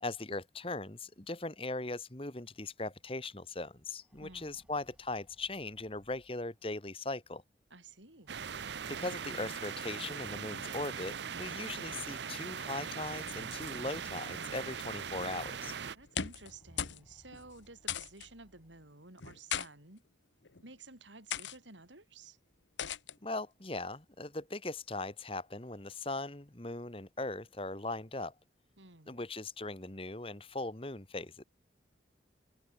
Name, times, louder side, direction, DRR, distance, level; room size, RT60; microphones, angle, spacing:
voice 1, 0.0-7.4 8.8-15.7 23.2-28.3 29.1-31.4, left 2 dB, 30° left, 1.7 m, -39 dB
sound 1, 3.9-6.8 8.1-9.8 10.8-10.9 11.3-11.4 12.7-15.8 16.3-18.9, equal, 5° right, 7.6 m, -64 dB
voice 2, 4.2-4.6 7.7-8.3 15.9-20.0 20.6-22.4 28.8-29.2, right 3 dB, 90° right, 6.4 m, -53 dB
sound 2, 8.3-16.0, right 7 dB, 75° right, 0.7 m, -40 dB
sound 3, 16.0-16.5 16.8-17.0 17.3-17.4 17.9-18.3 19.2-19.7 20.4-20.7 21.3-21.6 22.8-23.1, left 8 dB, 85° left, 1.1 m, -37 dB
head